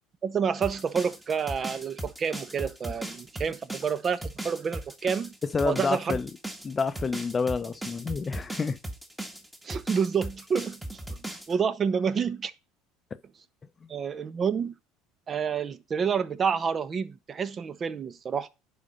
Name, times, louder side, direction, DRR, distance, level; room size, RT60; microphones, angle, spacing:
voice 1, 0.2-5.3 5.6-6.2 9.6-10.8 11.1-11.2 11.5-12.5 13.9-14.7 15.3-18.5, right 6 dB, 35° right, 0.9 m, -28 dB
sound 1, 0.6-11.5, right 1 dB, 5° right, 1.6 m, -37 dB
voice 2, 5.5-6.3 6.6-8.8, left 5 dB, 25° left, 0.7 m, -28 dB
10.5 x 4.2 x 5.2 m
supercardioid pair, 100°, 0 cm